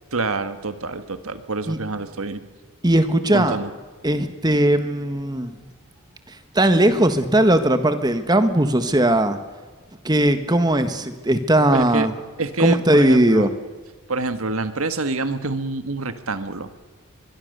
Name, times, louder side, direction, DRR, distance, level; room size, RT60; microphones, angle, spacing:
voice 1, 0.1-2.4 3.3-3.7 11.7-12.1 12.4-13.5 14.1-16.7, right 3 dB, 75° right, 10 dB, 1.6 m, -26 dB
voice 2, 2.8-3.6 4.0-5.5 6.5-9.4 10.0-12.1 12.6-13.5, right 1 dB, 20° right, 9 dB, 1.4 m, -18 dB
23.0 x 23.0 x 6.8 m, 1.4 s
head